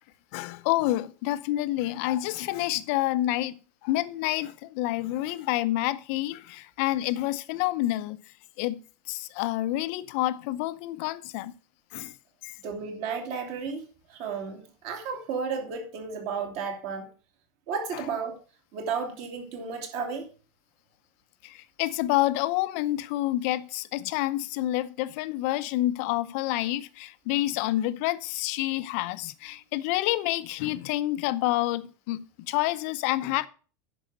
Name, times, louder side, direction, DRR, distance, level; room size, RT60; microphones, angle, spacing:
voice 1, 0.3-3.5 3.8-8.2 8.6-8.8 9.1-11.5 11.9-12.1 12.4-12.5 17.9-18.0 21.4-33.5, left 16 dB, 50° left, 0.6 m, -28 dB
voice 2, 12.6-13.8 14.1-17.1 17.7-18.3 18.7-20.3, right 5 dB, 45° right, 2.8 m, -33 dB
10.0 x 6.3 x 6.4 m
supercardioid pair, 175°, 10 cm